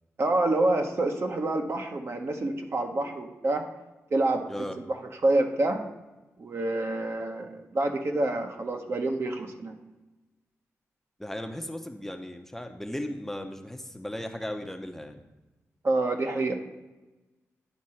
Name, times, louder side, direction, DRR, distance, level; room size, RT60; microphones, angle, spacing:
voice 1, 0.2-3.6 4.1-4.4 4.9-5.0 5.2-5.8 6.4-9.7 15.8-16.5, right 2 dB, 50° right, 4 dB, 0.9 m, -27 dB
voice 2, 11.2-15.2, left 1 dB, 5° left, 5 dB, 0.6 m, -36 dB
10.0 x 3.7 x 4.3 m, 1.1 s
cardioid pair, 65°, 5 cm